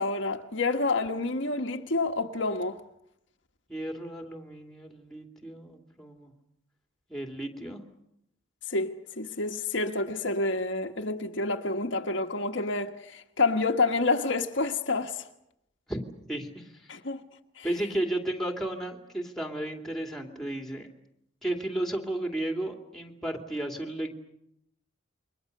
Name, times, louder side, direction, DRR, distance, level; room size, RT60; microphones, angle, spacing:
voice 1, 0.0-2.8 8.7-15.3 16.9-17.2 17.6-17.7, left 3 dB, 70° left, 1.5 m, -28 dB
voice 2, 3.7-6.3 7.1-7.8 15.9-16.0 16.3-16.9 17.6-20.9 21.4-24.1, right 1 dB, ahead, 2.6 m, -33 dB
29.0 x 23.5 x 6.7 m
head